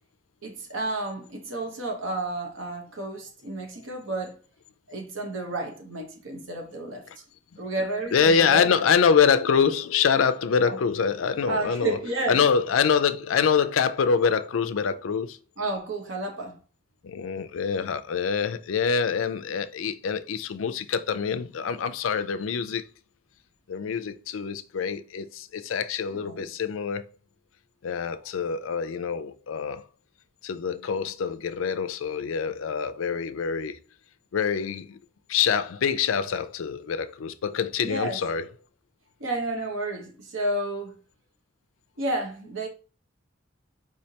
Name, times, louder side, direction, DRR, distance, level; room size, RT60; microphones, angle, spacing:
voice 1, 0.4-4.4 4.9-7.0 7.6-8.7 10.6-10.8 11.5-12.4 15.6-16.6 26.2-26.5 37.8-38.2 39.2-40.9 42.0-42.7, right 2 dB, 70° right, 0.9 m, -31 dB
voice 2, 8.1-12.0 12.3-15.4 17.0-22.9 23.7-27.1 27.8-29.8 30.4-33.8 34.3-35.0 35.3-38.5, left 6 dB, 85° left, 0.4 m, -25 dB
4.9 x 3.2 x 2.8 m
head